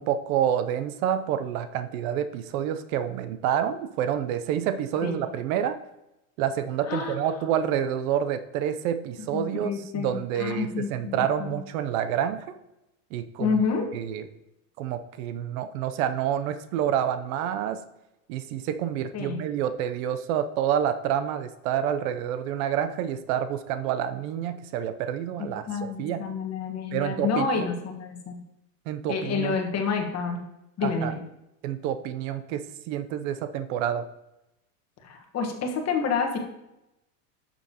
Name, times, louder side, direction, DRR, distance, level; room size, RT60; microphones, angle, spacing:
voice 1, 0.0-5.8 6.4-12.4 13.1-13.6 13.9-14.2 14.8-17.8 18.3-26.2 26.9-27.7 28.9-29.5 30.8-31.1 31.6-34.1, right 9 dB, 60° right, 11 dB, 0.7 m, -28 dB
voice 2, 6.9-7.3 9.2-11.6 13.4-13.9 19.1-19.4 25.4-28.4 29.1-30.4 30.8-31.2 35.0-36.4, left 5 dB, 30° left, 4 dB, 1.4 m, -29 dB
9.4 x 7.2 x 2.9 m, 0.90 s
supercardioid pair, 120°, 48 cm